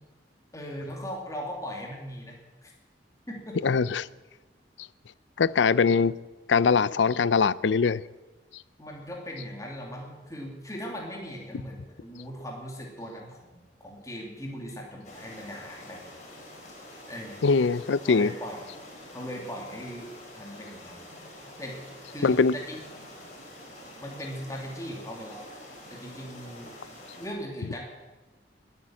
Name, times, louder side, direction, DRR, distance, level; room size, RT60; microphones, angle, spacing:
voice 1, 0.5-2.7 3.3-3.7 8.8-16.0 17.1-17.5 18.1-18.6 19.1-20.1 20.3-21.0 21.6-21.8 22.1-22.8 24.0-25.4 25.9-26.7 27.2-27.8, equal, 20° left, 2.7 m, -39 dB
voice 2, 3.6-4.0 5.4-6.2 6.5-8.0 17.4-18.3 22.2-22.5, left 5 dB, 90° left, 0.5 m, -22 dB
sound 1, 15.0-27.3, left 1 dB, 40° left, 4.5 m, -46 dB
20.5 x 9.4 x 7.6 m
head